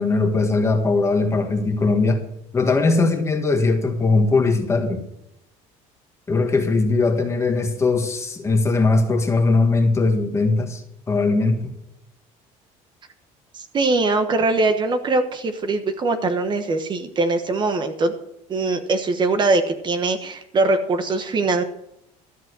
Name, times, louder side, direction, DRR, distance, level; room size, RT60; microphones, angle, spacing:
voice 1, 0.0-2.3 2.5-5.0 6.3-10.8 11.1-11.7, left 3 dB, 20° left, 4 dB, 1.7 m, -20 dB
voice 2, 13.5-18.1 18.5-21.6, right 3 dB, 30° right, 8 dB, 1.2 m, -22 dB
13.5 x 7.7 x 6.2 m, 0.83 s
cardioid pair, 140°, 14 cm